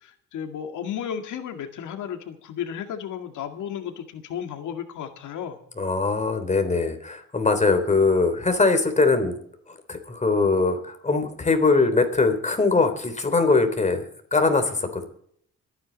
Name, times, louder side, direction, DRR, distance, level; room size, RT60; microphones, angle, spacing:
voice 1, 0.0-5.6, left 8 dB, 80° left, 6 dB, 2.1 m, -33 dB
voice 2, 5.8-9.3 9.9-14.0 14.3-15.0, left 3 dB, 25° left, 7 dB, 3.5 m, -21 dB
24.0 x 9.8 x 4.1 m, 0.66 s
cardioid pair, 90°, 30 cm